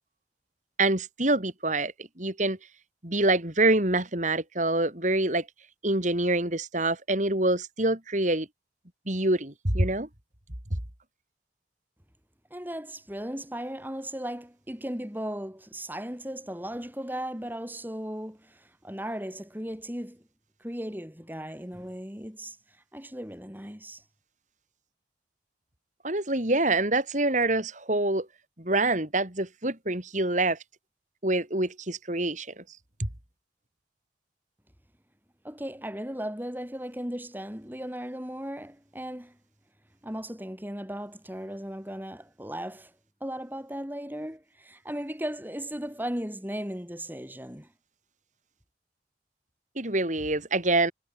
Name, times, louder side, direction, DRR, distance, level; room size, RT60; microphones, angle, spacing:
voice 1, 0.8-2.6 3.0-5.5 5.8-8.5 9.1-10.1 26.0-28.3 28.6-30.6 31.2-32.5 33.0-33.1 49.8-50.9, right 2 dB, 40° right, 3.9 m, -26 dB
voice 2, 12.5-20.2 20.6-22.6 22.9-24.0 35.4-39.4 40.0-42.9 43.2-47.7, equal, 10° right, 5.1 m, -36 dB
head